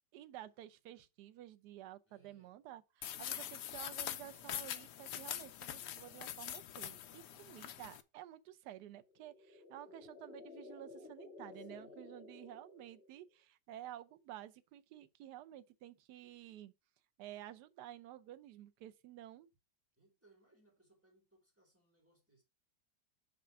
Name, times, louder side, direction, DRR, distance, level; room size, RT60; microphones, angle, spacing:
voice 1, 0.1-16.7 17.2-19.5, right 13 dB, 70° right, 1.2 m, -52 dB
voice 2, 2.1-2.6 7.2-7.6 11.6-12.1 20.0-22.4, right 2 dB, 5° right, 4.0 m, -70 dB
sound 1, 3.0-8.0, left 11 dB, 75° left, 1.2 m, -44 dB
sound 2, 8.9-13.4, left 3 dB, 35° left, 1.8 m, -54 dB
6.8 x 5.2 x 4.7 m
omnidirectional pair, 1.9 m